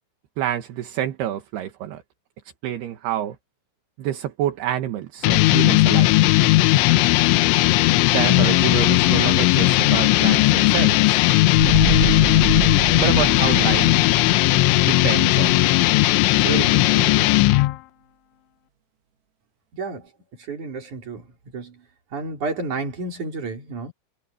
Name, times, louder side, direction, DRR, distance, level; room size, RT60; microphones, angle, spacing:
voice 1, 0.4-2.0 2.6-3.4 4.0-6.1 8.1-11.2 13.0-14.0 14.8-15.8 16.4-17.3, right 11 dB, 65° right, 3.0 m, -27 dB
sound 1, 5.2-17.8, left 18 dB, 80° left, 2.9 m, -17 dB
sound 2, 11.5-16.1 16.4-16.5, right 8 dB, 90° right, 4.9 m, -28 dB
voice 2, 19.7-23.9, right 3 dB, 40° right, 5.8 m, -32 dB
omnidirectional pair, 5.8 m